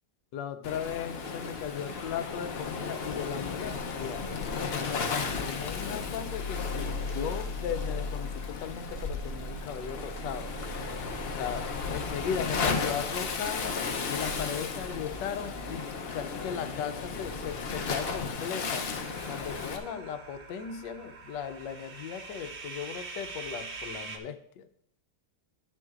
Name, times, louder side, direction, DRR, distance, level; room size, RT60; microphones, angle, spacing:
voice 1, 0.3-4.3 4.7-10.5 11.3-13.8 14.1-18.9 19.3-24.7, left 8 dB, 80° left, 10 dB, 1.3 m, -37 dB
Waves surf, 0.6-19.8, left 5 dB, 55° left, 0.7 m, -35 dB
sound 1, 5.7-18.3, left 2 dB, 15° left, 1.8 m, -41 dB
sound 2, 19.0-24.2, right 3 dB, 50° right, 0.7 m, -43 dB
10.5 x 9.0 x 2.4 m, 0.69 s
omnidirectional pair, 1.9 m